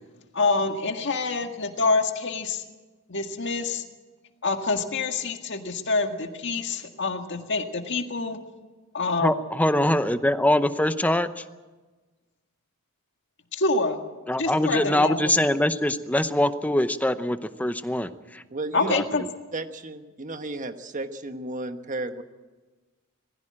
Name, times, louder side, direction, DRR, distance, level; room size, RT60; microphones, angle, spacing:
voice 1, 0.3-2.6 3.1-3.8 4.4-8.4 8.9-9.3 13.6-14.0 14.4-15.3 18.7-19.2, left 3 dB, 55° left, 5 dB, 1.9 m, -26 dB
voice 2, 9.2-11.4 14.3-18.4 18.8-19.0, left 1 dB, 5° left, 11 dB, 0.7 m, -23 dB
voice 3, 18.5-19.0 19.5-22.2, right 2 dB, 35° right, 8 dB, 1.2 m, -33 dB
20.0 x 15.5 x 8.8 m, 1.3 s
head